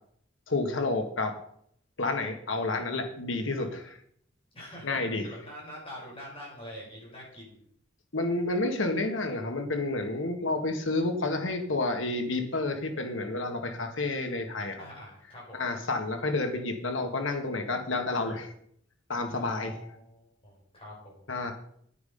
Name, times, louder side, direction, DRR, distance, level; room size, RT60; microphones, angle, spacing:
voice 1, 0.5-1.3 2.0-4.0 4.8-5.3 8.1-14.8 15.5-18.5 19.1-19.9 21.3-21.5, left 2 dB, 85° left, 5 dB, 1.7 m, -30 dB
voice 2, 4.5-7.6 14.8-15.6 19.4-21.2, equal, 30° left, -4 dB, 5.8 m, -45 dB
10.5 x 9.5 x 5.3 m, 0.66 s
head